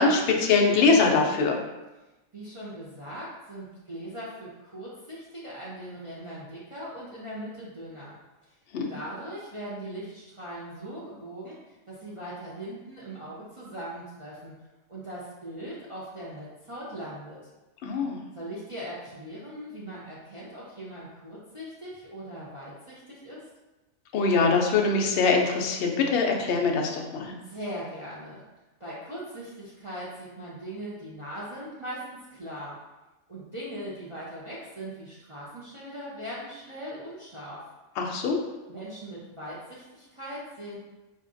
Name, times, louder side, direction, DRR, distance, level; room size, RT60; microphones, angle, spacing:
voice 1, 0.0-1.6 8.7-8.9 17.8-18.2 24.1-27.3 38.0-38.4, left 4 dB, 65° left, 1 dB, 0.6 m, -23 dB
voice 2, 2.3-8.2 8.9-14.5 14.9-17.4 18.3-23.5 27.4-28.4 28.8-32.7 33.3-37.6 38.7-40.8, right 1 dB, 40° right, -8 dB, 0.4 m, -40 dB
4.3 x 2.4 x 2.5 m, 1.1 s
omnidirectional pair, 1.4 m